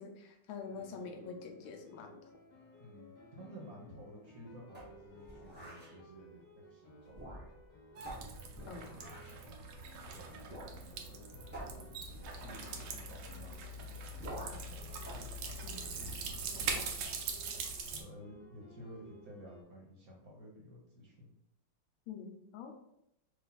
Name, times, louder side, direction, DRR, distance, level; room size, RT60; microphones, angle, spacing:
voice 1, 0.0-2.2 8.7-9.0 15.6-15.9 16.5-16.9 22.1-22.7, left 5 dB, 80° left, 5 dB, 1.4 m, -46 dB
sound 1, 0.6-19.6, left 1 dB, 35° left, 1.6 m, -58 dB
voice 2, 2.8-7.4 9.0-9.1 10.1-12.0 12.3-14.0 14.4-15.3 16.5-16.7 17.8-21.3, equal, 55° right, -2 dB, 1.2 m, -53 dB
sound 2, 4.7-5.9 7.0-7.7 8.0-9.5 10.5-10.8 11.0-11.1 11.5-13.0 14.2-14.7 15.0-16.2 16.6-17.0, right 1 dB, 10° right, 0.5 m, -48 dB
sound 3, 8.0-18.0, right 4 dB, 85° right, 1.5 m, -42 dB
4.7 x 2.5 x 3.9 m, 0.80 s
omnidirectional pair, 2.2 m